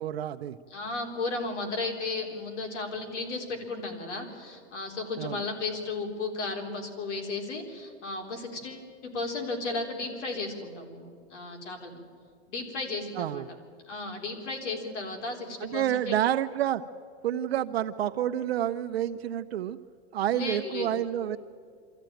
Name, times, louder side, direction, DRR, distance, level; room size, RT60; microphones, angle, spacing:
voice 1, 0.0-0.6 5.2-5.4 13.1-13.5 15.6-16.8 17.2-19.8 20.1-21.4, right 11 dB, 60° right, 8 dB, 0.7 m, -29 dB
voice 2, 0.7-12.0 12.5-13.4 13.9-16.1 20.3-20.9, left 3 dB, 80° left, 3 dB, 4.1 m, -34 dB
25.0 x 14.0 x 9.1 m, 2.4 s
supercardioid pair, 170°, 35 cm